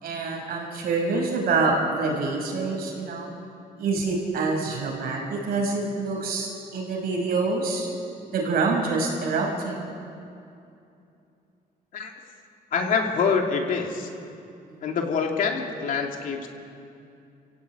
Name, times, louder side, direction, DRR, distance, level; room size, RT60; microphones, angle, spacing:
voice 1, 0.0-3.3 3.8-7.9 8.3-9.9 14.7-14.8, right 3 dB, 70° right, -1 dB, 6.0 m, -26 dB
voice 2, 12.7-14.1 14.8-16.5, left 5 dB, 60° left, 2 dB, 2.7 m, -25 dB
28.0 x 16.5 x 9.0 m, 2.6 s
cardioid pair, 180°, 16 cm